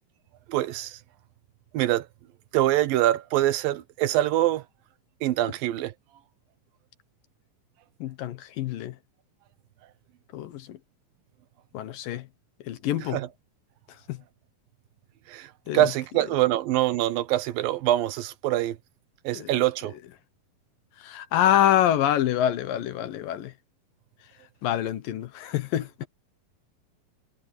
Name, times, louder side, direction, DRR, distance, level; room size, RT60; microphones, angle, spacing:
voice 1, 0.5-1.0 1.7-2.1 2.5-4.6 5.2-5.9 13.1-13.3 15.3-18.8 19.2-19.9, right 14 dB, 75° right, 2.5 m, -24 dB
voice 2, 8.0-9.0 10.3-10.8 11.7-12.3 12.6-13.2 14.1-14.2 15.7-15.9 19.3-19.5 21.0-23.5 24.6-25.9, left 11 dB, 70° left, 2.7 m, -26 dB
omnidirectional pair, 4.3 m